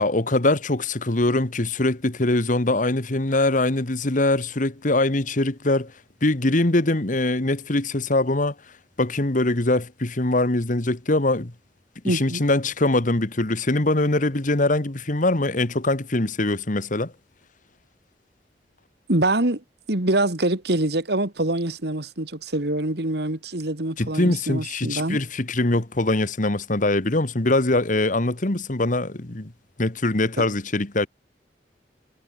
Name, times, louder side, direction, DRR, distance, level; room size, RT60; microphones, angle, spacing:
voice 1, 0.0-5.9 6.2-8.5 9.0-11.5 12.0-17.1 24.0-29.5 29.8-31.1, left 2 dB, 50° left, 1.7 m, -22 dB
voice 2, 12.0-12.4 19.1-19.6 19.9-25.2 30.4-30.5, right 2 dB, 65° right, 2.4 m, -24 dB
head